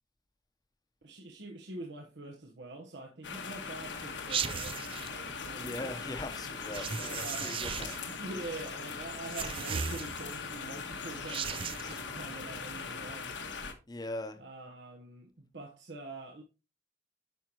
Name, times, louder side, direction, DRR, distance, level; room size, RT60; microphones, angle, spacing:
voice 1, 1.0-6.0 7.0-7.8 8.1-13.4 14.4-16.4, right 2 dB, 70° right, 1.1 m, -45 dB
sound 1, 3.2-13.7, left 5 dB, 80° left, 1.5 m, -40 dB
sound 2, 4.3-5.1 6.7-8.1 9.3-10.4 11.2-12.0, right 7 dB, 30° right, 0.3 m, -36 dB
voice 2, 5.6-8.0 13.9-14.4, left 1 dB, 20° left, 0.9 m, -40 dB
9.0 x 6.1 x 3.0 m
head